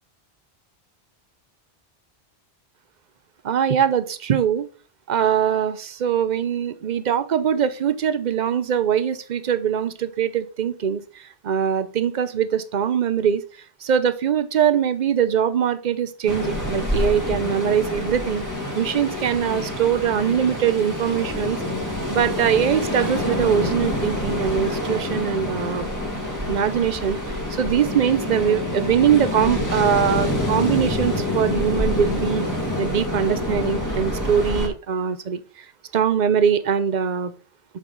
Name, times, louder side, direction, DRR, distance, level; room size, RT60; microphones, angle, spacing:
voice 1, 3.4-4.7 5.1-13.4 13.8-18.4 18.7-21.6 22.1-25.8 26.5-32.4 32.8-35.4 35.9-37.3, right 8 dB, 50° right, 13 dB, 0.7 m, -22 dB
Ocean, 16.3-34.7, left 1 dB, 15° left, 1.6 m, -26 dB
7.4 x 5.2 x 3.8 m, 0.38 s
omnidirectional pair, 1.1 m